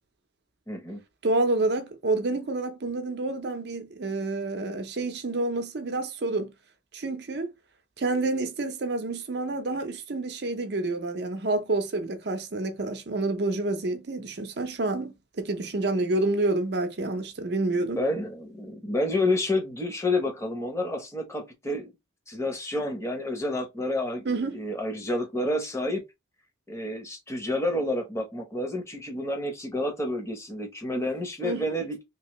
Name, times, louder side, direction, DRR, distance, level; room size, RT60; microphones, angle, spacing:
voice 1, 0.7-1.0 18.0-21.9 22.3-26.0 26.7-32.0, left 1 dB, 15° left, 0.8 m, -29 dB
voice 2, 1.2-6.5 6.9-7.5 8.0-18.0 24.3-24.6 30.9-31.1 31.4-31.8, right 2 dB, 55° right, 0.6 m, -28 dB
2.9 x 2.7 x 3.0 m
head